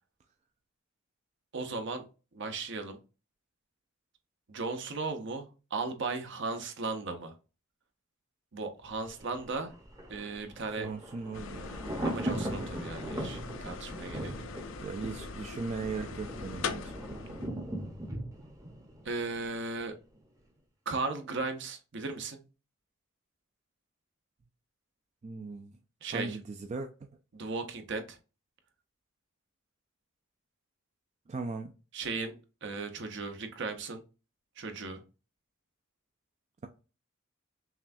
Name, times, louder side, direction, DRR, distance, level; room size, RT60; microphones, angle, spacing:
voice 1, 1.5-2.0 2.3-3.0 4.5-7.3 8.5-9.7 10.1-10.9 12.0-14.5 19.0-19.9 20.9-22.4 26.0-26.4 27.3-28.2 31.9-34.0 34.6-35.0, right 3 dB, 60° right, 0.7 m, -36 dB
Thunder, 8.9-19.8 20.1-20.2, right 1 dB, 15° right, 0.7 m, -39 dB
voice 2, 10.8-11.8 14.8-16.9 25.2-25.8 26.1-26.9 31.3-31.7, right 4 dB, 35° right, 0.3 m, -38 dB
sound 1, 11.3-17.5, left 5 dB, 75° left, 0.5 m, -41 dB
5.7 x 2.2 x 2.6 m
head